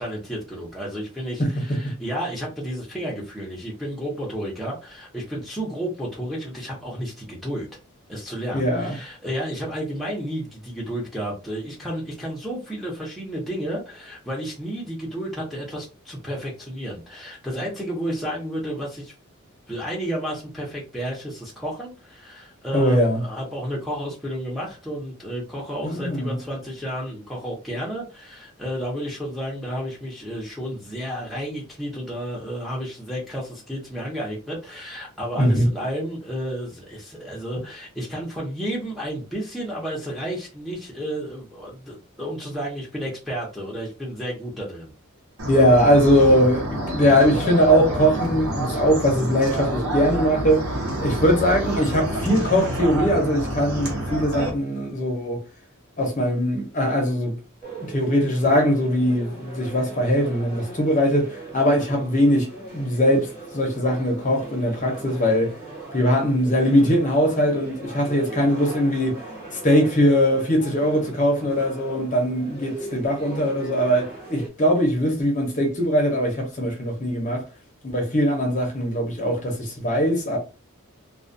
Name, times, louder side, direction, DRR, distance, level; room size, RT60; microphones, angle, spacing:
voice 1, 0.0-7.7 8.1-19.1 19.7-44.9, equal, ahead, 0.7 m, -31 dB
voice 2, 1.4-1.9 8.5-8.9 22.7-23.2 25.8-26.4 35.4-35.6 45.5-50.7 51.0-55.4 56.0-57.3 57.8-65.5 65.9-69.2 69.6-77.4 77.8-80.4, equal, 35° left, 0.7 m, -21 dB
sound 1, 45.4-54.5, right 1 dB, 80° right, 0.9 m, -28 dB
sound 2, 57.6-74.5, right 2 dB, 40° right, 1.0 m, -39 dB
2.3 x 2.2 x 2.6 m
head